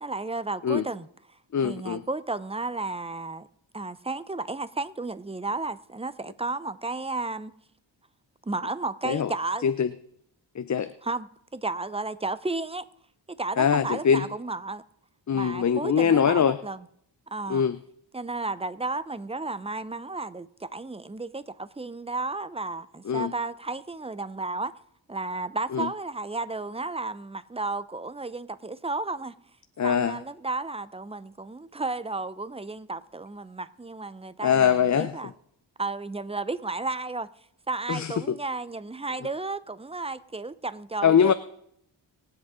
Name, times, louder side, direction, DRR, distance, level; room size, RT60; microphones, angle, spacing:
voice 1, 0.0-3.5 3.7-7.5 8.5-9.6 11.0-12.9 13.3-14.8 15.3-16.8 17.3-17.6 18.1-24.7 25.1-29.3 29.8-35.3 35.8-37.3 37.7-41.3, right 3 dB, 15° right, 0.8 m, -33 dB
voice 2, 1.5-2.0 9.0-9.3 9.6-9.9 10.5-10.9 13.6-14.3 15.3-16.6 17.5-17.8 23.1-23.3 25.7-25.9 29.8-30.2 34.4-35.1 37.9-38.3 41.0-41.3, left 7 dB, 40° left, 0.7 m, -23 dB
24.0 x 8.0 x 3.8 m
cardioid pair, 70°, 45 cm